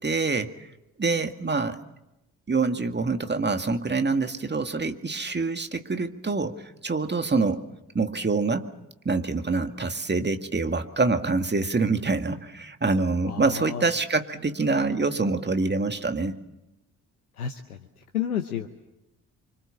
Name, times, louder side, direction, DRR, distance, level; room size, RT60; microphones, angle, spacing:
voice 1, 0.0-0.5 1.0-1.8 2.5-7.6 7.9-8.7 9.1-16.4, right 3 dB, 25° right, 7 dB, 2.1 m, -26 dB
voice 2, 13.3-13.9 17.4-17.8 18.1-18.7, left 9 dB, 85° left, 8 dB, 1.0 m, -30 dB
28.5 x 25.0 x 7.4 m, 0.94 s
figure-of-eight pair, 40°, 43 cm